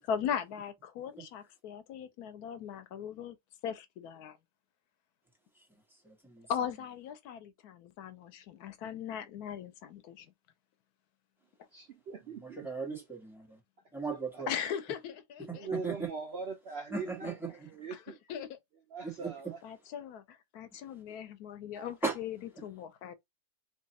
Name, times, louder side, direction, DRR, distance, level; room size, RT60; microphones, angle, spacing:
voice 1, 0.1-3.4 3.6-4.4 6.5-10.3 14.5-15.7 17.9-18.0 18.3-18.5 19.6-23.1, left 8 dB, 85° left, 1.2 m, -39 dB
voice 2, 6.0-6.5 12.4-13.6 13.9-14.5 15.5-16.1 16.9-17.7 19.0-19.3 21.7-22.2, right 4 dB, ahead, 1.1 m, -37 dB
voice 3, 11.7-12.7 14.1-14.4 15.4-18.2 18.9-19.6, right 4 dB, 65° right, 0.6 m, -41 dB
3.0 x 2.3 x 4.0 m
omnidirectional pair, 1.6 m